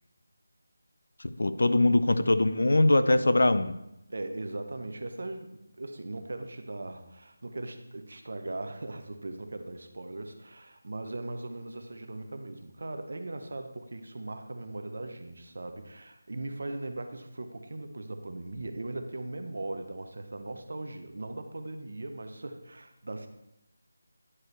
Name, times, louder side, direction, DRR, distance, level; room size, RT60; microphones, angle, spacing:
voice 1, 1.2-3.8, left 2 dB, 70° left, 12 dB, 0.4 m, -22 dB
voice 2, 4.1-23.3, right 2 dB, 50° right, 7 dB, 0.7 m, -39 dB
9.7 x 4.7 x 3.2 m, 0.88 s
figure-of-eight pair, 180°, 0 cm